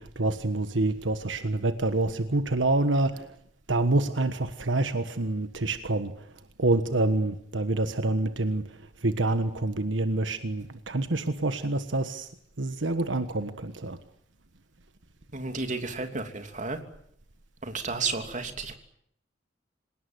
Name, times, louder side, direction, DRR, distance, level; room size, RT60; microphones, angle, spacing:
voice 1, 0.0-3.3 3.7-6.1 6.6-8.6 9.0-12.3 12.6-14.0, right 2 dB, 80° right, 10 dB, 1.4 m, -27 dB
voice 2, 15.3-16.8 17.6-18.8, right 4 dB, 40° right, 6 dB, 3.0 m, -32 dB
26.5 x 18.5 x 9.6 m, 0.70 s
head